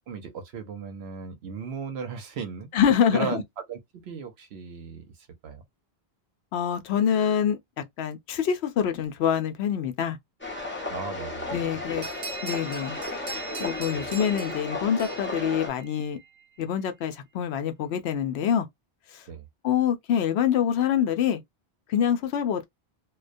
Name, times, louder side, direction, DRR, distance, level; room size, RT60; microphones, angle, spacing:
voice 1, 0.1-2.7 3.1-3.4 3.7-5.1 5.4-5.6 10.9-11.8 13.9-14.0 19.3-19.4, right 6 dB, 80° right, 0.9 m, -36 dB
voice 2, 2.7-3.4 6.5-10.2 11.5-12.0 12.4-13.0 13.6-16.2 16.6-18.7 19.1-19.2 19.6-21.4 21.9-22.6, left 8 dB, 80° left, 0.8 m, -25 dB
sound 1, 10.4-15.7, left 2 dB, 10° left, 0.7 m, -34 dB
sound 2, 12.0-16.3, right 3 dB, 40° right, 0.5 m, -40 dB
2.3 x 2.2 x 2.5 m
omnidirectional pair, 1.1 m